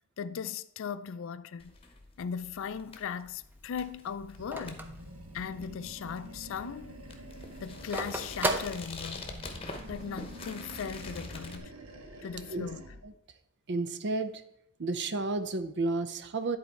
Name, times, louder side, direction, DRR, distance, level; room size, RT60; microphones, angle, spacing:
voice 1, 0.2-1.8 2.2-4.9 5.3-7.0 7.6-9.3 9.9-11.7 12.2-12.8, left 6 dB, 65° left, 0.4 m, -38 dB
sound 1, 1.6-11.6, left 3 dB, 25° left, 0.9 m, -46 dB
Telephone, 2.5-5.9 6.3-6.4 6.6-9.5, right 2 dB, 10° right, 0.6 m, -36 dB
Animal, 4.3-8.9 9.2-13.1, right 1 dB, 80° right, 1.1 m, -48 dB
voice 2, 13.7-14.4 14.8-16.6, right 3 dB, 55° right, 0.6 m, -31 dB
10.5 x 4.1 x 4.6 m
head